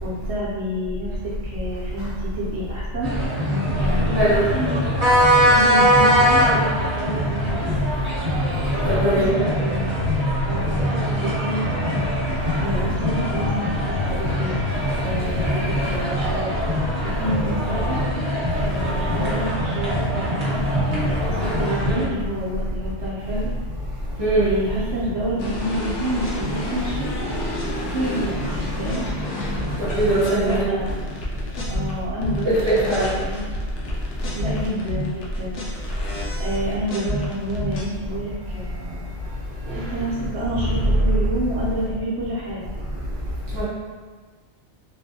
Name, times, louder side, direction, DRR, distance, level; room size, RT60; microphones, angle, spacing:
voice 1, 0.0-3.1 3.4-5.1 5.5-7.8 8.8-10.0 10.5-12.1 12.6-14.6 14.9-16.5 16.8-18.1 18.6-20.6 21.2-23.5 24.3-27.3 27.9-29.1 30.3-30.9 31.7-33.4 34.4-35.6 36.4-39.0 39.7-42.7, equal, 75° right, -9 dB, 1.0 m, -29 dB
sound 1, 3.0-22.0, equal, 45° right, 1.0 m, -22 dB
voice 2, 8.9-9.3 20.9-21.0 24.2-24.5 29.9-30.6 32.5-33.1 43.5-43.6, right 1 dB, 30° right, -8 dB, 0.5 m, -20 dB
sound 2, 25.4-31.9 32.2-37.8, left 1 dB, 85° left, 1.0 m, -30 dB
3.5 x 2.4 x 2.7 m, 1.5 s
omnidirectional pair, 1.2 m